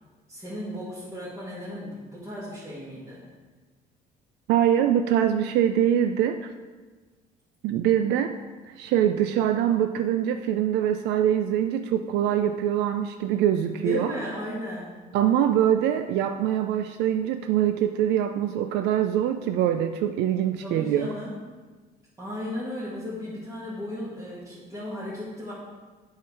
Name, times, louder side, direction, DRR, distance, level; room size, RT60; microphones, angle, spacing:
voice 1, 0.3-3.2 13.7-14.9 20.6-21.3 22.2-25.5, left 1 dB, 20° right, -8 dB, 1.9 m, -35 dB
voice 2, 4.5-6.5 7.6-8.4 8.7-14.1 15.1-21.1, right 10 dB, 85° right, 8 dB, 0.4 m, -23 dB
7.5 x 5.6 x 4.6 m, 1.3 s
cardioid pair, 110°, 17 cm